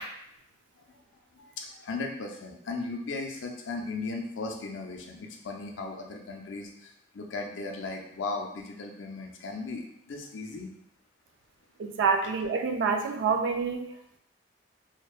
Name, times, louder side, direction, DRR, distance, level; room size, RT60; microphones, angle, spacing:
voice 1, 1.3-10.7, left 3 dB, 80° left, 2 dB, 0.4 m, -37 dB
voice 2, 11.8-13.9, right 5 dB, 80° right, 5 dB, 0.3 m, -27 dB
2.6 x 2.1 x 2.3 m, 0.74 s
head